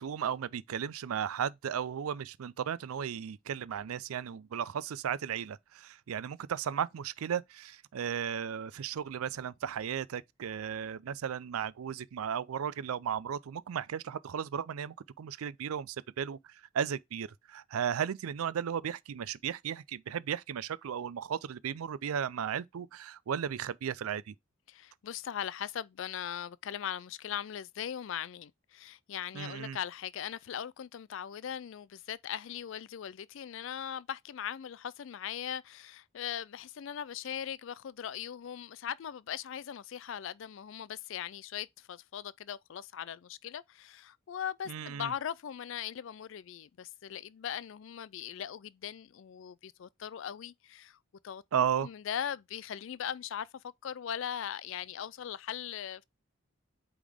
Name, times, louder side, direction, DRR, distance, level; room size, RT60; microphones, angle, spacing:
voice 1, 0.0-24.3 29.3-29.8 44.7-45.1 51.5-51.9, right 8 dB, 90° right, 0.4 m, -35 dB
voice 2, 24.7-51.0 51.2-56.0, left 9 dB, 65° left, 0.3 m, -39 dB
8.4 x 3.6 x 3.5 m
head